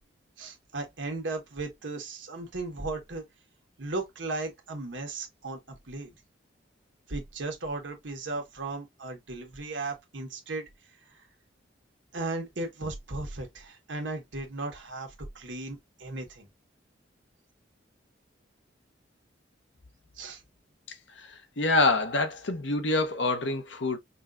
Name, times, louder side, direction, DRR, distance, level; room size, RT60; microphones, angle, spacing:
voice 1, 0.4-3.2 3.8-6.1 7.1-10.6 11.1-11.2 12.1-16.5 20.2-20.4, right 2 dB, 80° right, 1.3 m, -36 dB
voice 2, 21.2-24.0, left 2 dB, 70° left, 0.9 m, -26 dB
5.4 x 2.4 x 2.5 m
head